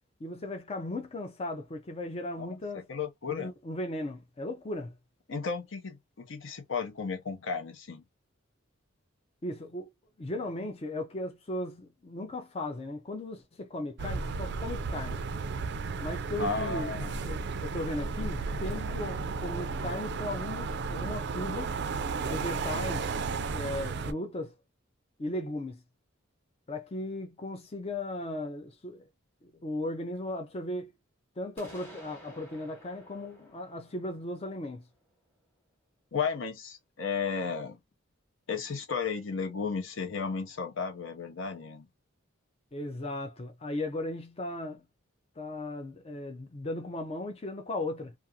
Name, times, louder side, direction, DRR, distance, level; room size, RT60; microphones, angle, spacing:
voice 1, 0.2-2.9 3.3-4.9 9.4-9.9 10.2-15.2 16.0-16.9 17.3-21.8 22.2-23.1 23.5-24.5 25.2-25.8 26.7-29.0 29.4-30.9 31.4-34.8 42.7-44.9 45.4-48.1, left 1 dB, 30° left, 0.5 m, -37 dB
voice 2, 2.4-3.5 5.3-8.0 16.4-17.2 36.1-37.8 38.5-41.9, left 5 dB, 65° left, 0.7 m, -34 dB
sound 1, 14.0-24.1, right 4 dB, 55° right, 0.4 m, -34 dB
sound 2, 31.6-35.4, equal, 10° left, 1.1 m, -53 dB
2.5 x 2.4 x 2.7 m
head